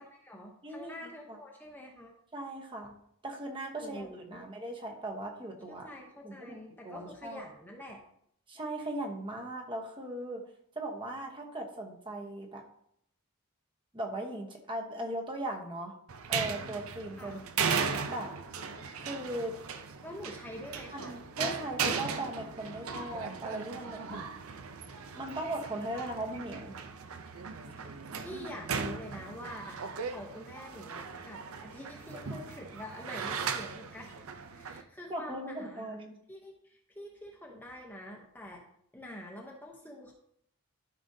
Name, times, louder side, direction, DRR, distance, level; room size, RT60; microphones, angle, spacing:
voice 1, 0.0-2.1 3.8-4.5 5.7-8.0 17.2-17.4 20.0-21.2 28.2-34.2 34.5-36.0 36.3-38.6 38.9-40.1, equal, 10° left, 0 dB, 0.8 m, -46 dB
voice 2, 0.6-1.4 2.3-2.9 3.2-5.9 6.2-6.6 6.8-7.5 8.5-10.4 10.7-12.6 13.9-15.9 16.3-17.5 18.1-18.3 19.0-19.6 20.9-24.3 25.1-26.8 35.1-36.2, right 1 dB, 20° right, 1 dB, 1.0 m, -38 dB
sound 1, 16.1-34.8, right 6 dB, 75° right, 0.6 m, -37 dB
12.5 x 5.1 x 2.7 m, 0.71 s
head